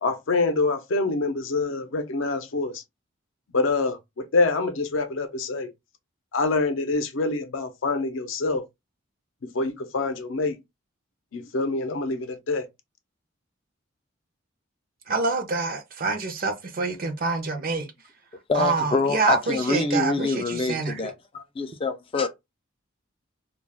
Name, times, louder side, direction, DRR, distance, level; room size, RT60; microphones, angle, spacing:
voice 1, 0.0-2.8 3.5-5.7 6.3-8.6 9.5-10.6 11.3-12.7, left 3 dB, 75° left, 0.6 m, -26 dB
voice 2, 15.1-17.9 18.5-21.0, right 4 dB, 45° right, 0.5 m, -26 dB
voice 3, 18.5-22.3, left 3 dB, 25° left, 0.3 m, -26 dB
2.3 x 2.2 x 3.4 m
head